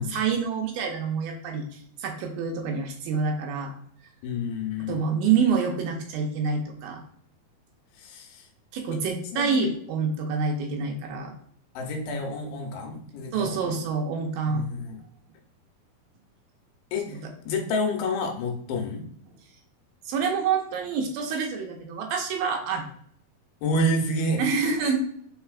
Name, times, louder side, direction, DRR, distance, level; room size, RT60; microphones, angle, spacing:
voice 1, 0.0-1.7 2.0-3.8 4.9-7.0 8.7-11.3 13.3-14.7 20.1-22.9 24.4-25.0, right 5 dB, 80° right, 3 dB, 2.3 m, -27 dB
voice 2, 4.2-5.0 8.0-8.5 8.9-9.0 9.3-9.7 11.8-13.8 14.5-15.0 16.9-17.2 17.5-19.1 23.6-24.4 24.8-24.9, left 1 dB, 90° left, 2 dB, 2.9 m, -29 dB
5.5 x 4.1 x 2.3 m, 0.62 s
omnidirectional pair, 4.4 m